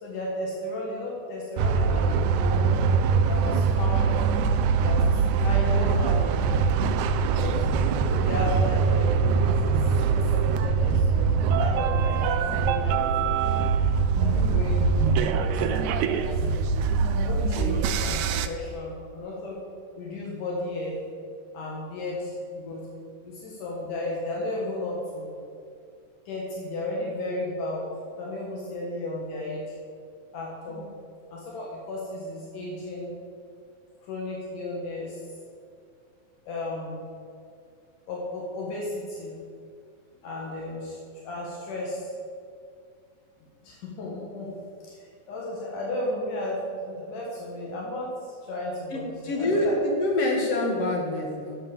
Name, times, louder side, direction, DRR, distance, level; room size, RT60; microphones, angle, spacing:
voice 1, 0.0-2.9 3.3-4.1 4.8-6.6 7.3-7.7 8.1-13.5 14.2-14.9 15.3-16.4 17.1-19.6 20.0-21.0 21.5-22.9 23.2-25.5 26.3-27.9 28.2-29.8 30.3-30.8 31.3-33.1 34.0-35.2 36.5-37.1 38.1-39.4 40.2-42.1 43.6-44.5 44.8-49.8, left 1 dB, 75° left, -3 dB, 3.1 m, -34 dB
sound 1, 1.6-18.5, right 5 dB, 80° right, 1.9 m, -23 dB
voice 2, 5.4-6.0 14.3-14.6 30.7-30.9 48.9-51.6, left 1 dB, 50° left, 0 dB, 2.7 m, -27 dB
11.5 x 7.4 x 7.3 m, 2.3 s
omnidirectional pair, 3.8 m